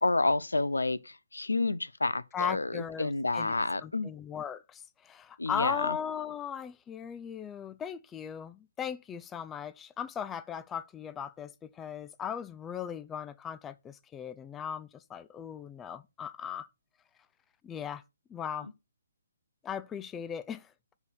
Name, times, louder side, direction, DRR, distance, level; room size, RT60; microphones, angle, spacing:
voice 1, 0.0-4.1 5.4-6.0, left 2 dB, 80° left, 0.6 m, -29 dB
voice 2, 2.3-3.5 3.8-16.7 17.6-18.0 18.3-18.7 19.6-20.7, left 8 dB, 15° left, 0.5 m, -38 dB
6.9 x 4.1 x 6.4 m
figure-of-eight pair, 140°, 0 cm